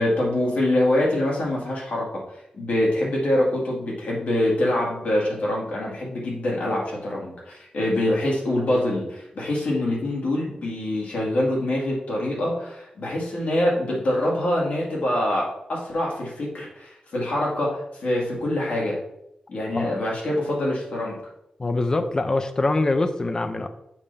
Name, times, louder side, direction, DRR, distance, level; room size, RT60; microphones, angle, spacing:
voice 1, 0.0-2.2 2.6-19.0 19.5-21.2, left 1 dB, 75° left, -4 dB, 2.3 m, -25 dB
voice 2, 21.6-23.7, left 2 dB, 25° left, 9 dB, 0.5 m, -24 dB
7.1 x 5.4 x 3.5 m, 0.82 s
wide cardioid pair, 165°, 3 cm